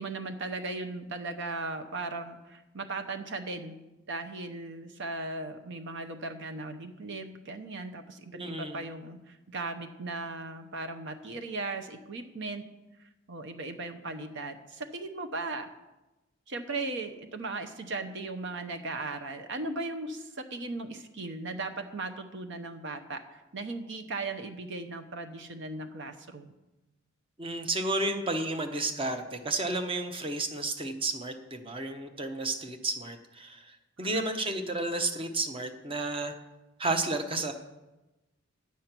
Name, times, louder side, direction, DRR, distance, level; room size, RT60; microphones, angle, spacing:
voice 1, 0.0-3.8 4.1-12.6 13.3-15.7 16.5-26.5 34.0-34.3, right 3 dB, 60° right, 7 dB, 0.8 m, -37 dB
voice 2, 8.3-8.8 27.4-36.3 36.8-37.5, right 2 dB, 25° right, 6 dB, 0.9 m, -32 dB
10.5 x 8.4 x 5.9 m, 1.0 s
head